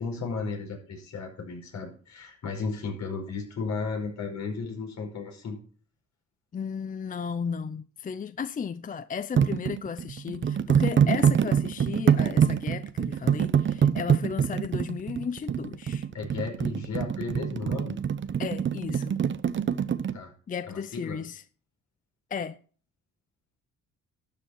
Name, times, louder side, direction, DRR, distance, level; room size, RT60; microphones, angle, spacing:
voice 1, 0.0-5.6 16.1-18.0 20.1-20.3 20.7-21.2, left 4 dB, 65° left, 5.3 m, -34 dB
voice 2, 6.5-16.1 18.4-19.2 20.5-21.4 22.3-22.6, left 6 dB, 30° left, 0.5 m, -34 dB
sound 1, 9.4-20.1, right 8 dB, 40° right, 0.8 m, -25 dB
12.5 x 7.0 x 5.7 m
cardioid pair, 90°, 30 cm